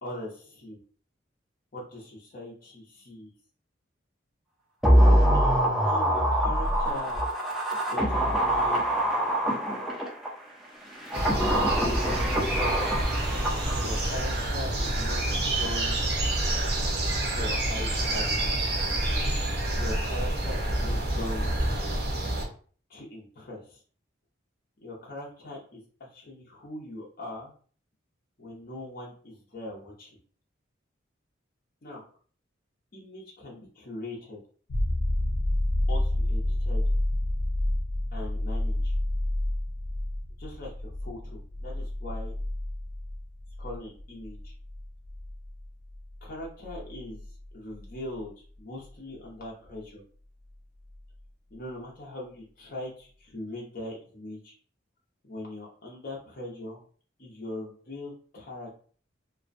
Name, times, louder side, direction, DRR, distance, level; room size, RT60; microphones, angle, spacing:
voice 1, 0.0-0.8 1.7-3.3 5.3-7.2 7.9-9.0 11.5-12.2 13.7-16.0 17.2-18.6 19.8-21.6 22.9-23.8 24.8-25.8 26.1-27.5 28.4-30.2 31.8-32.0 32.9-34.4 35.9-36.8 38.1-38.9 40.4-42.3 43.6-44.5 46.2-47.2 47.5-50.0 51.5-54.5 55.3-56.8 57.2-58.7, left 1 dB, 45° left, -4 dB, 0.6 m, -40 dB
sound 1, 4.8-10.3 10.9-14.2 14.4-14.5, equal, ahead, 0.4 m, -24 dB
sound 2, 11.1-22.4, right 1 dB, 55° right, 0.6 m, -28 dB
sound 3, 34.7-48.2 50.9-51.0, left 1 dB, 90° left, 0.5 m, -30 dB
2.5 x 2.1 x 2.4 m, 0.44 s
head